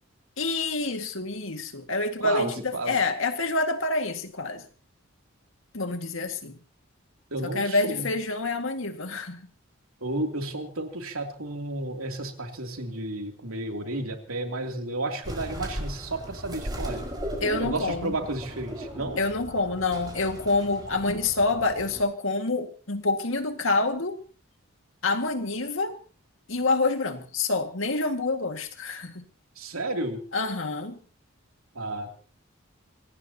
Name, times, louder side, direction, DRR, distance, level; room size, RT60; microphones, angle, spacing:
voice 1, 0.4-4.6 5.7-6.6 7.4-9.4 17.4-18.2 19.2-24.2 25.0-26.0 26.5-29.2 30.3-31.0, left 3 dB, 70° left, 6 dB, 2.0 m, -27 dB
voice 2, 2.2-2.9 7.3-8.1 10.0-17.1 17.6-19.2 29.6-30.2 31.7-32.1, right 2 dB, 85° right, 3 dB, 3.0 m, -32 dB
sound 1, 15.2-22.0, equal, 20° right, 5.3 m, -37 dB
25.5 x 17.5 x 2.9 m, 0.37 s
head